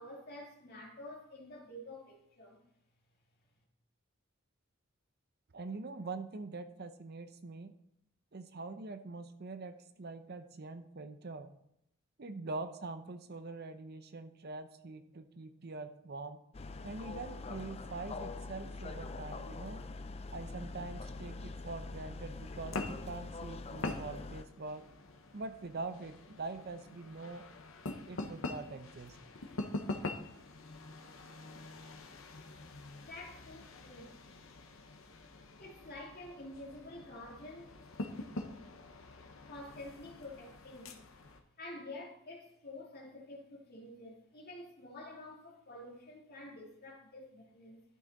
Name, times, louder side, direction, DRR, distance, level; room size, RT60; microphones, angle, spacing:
voice 1, 0.0-2.6 33.0-34.2 35.6-37.8 39.5-41.1 41.6-47.8, left 1 dB, 50° left, -1 dB, 2.3 m, -49 dB
voice 2, 5.5-7.7 8.3-11.5 12.2-16.4 16.8-19.8 20.3-24.9 25.3-27.4 28.1-29.2, right 3 dB, 50° right, 10 dB, 0.6 m, -44 dB
sound 1, 16.5-24.4, left 3 dB, 30° left, 0.4 m, -44 dB
sound 2, 22.3-41.4, left 2 dB, 70° left, 1.0 m, -45 dB
12.0 x 6.1 x 4.1 m, 0.77 s
head